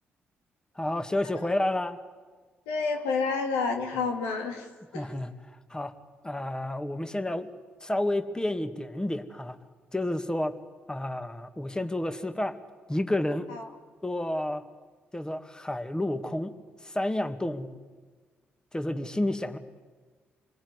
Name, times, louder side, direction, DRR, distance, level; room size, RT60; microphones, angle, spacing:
voice 1, 0.8-2.0 4.9-5.9 6.2-7.5 7.8-9.6 9.9-10.6 10.9-12.6 12.9-13.5 14.0-14.6 15.1-16.6 16.8-17.7 18.7-19.6, left 1 dB, 15° left, 9 dB, 2.1 m, -30 dB
voice 2, 2.7-4.7 4.9-5.1 13.5-13.6, left 4 dB, 85° left, 3 dB, 2.6 m, -29 dB
27.0 x 20.5 x 9.9 m, 1.4 s
hypercardioid pair, 45°, 5 cm